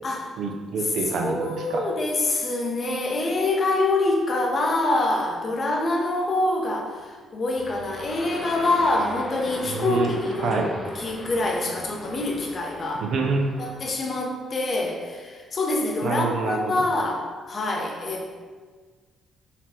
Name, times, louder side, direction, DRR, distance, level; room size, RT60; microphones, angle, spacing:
voice 1, 0.4-1.9 9.7-10.1 10.4-10.7 13.0-13.5 16.0-16.7, right 4 dB, 70° right, 3 dB, 0.5 m, -26 dB
voice 2, 1.1-13.1 13.6-18.2, left 2 dB, 45° left, 0 dB, 0.7 m, -25 dB
sound 1, 7.6-13.9, left 1 dB, 25° left, 1.1 m, -39 dB
4.1 x 2.2 x 4.3 m, 1.5 s
cardioid pair, 90°, 0 cm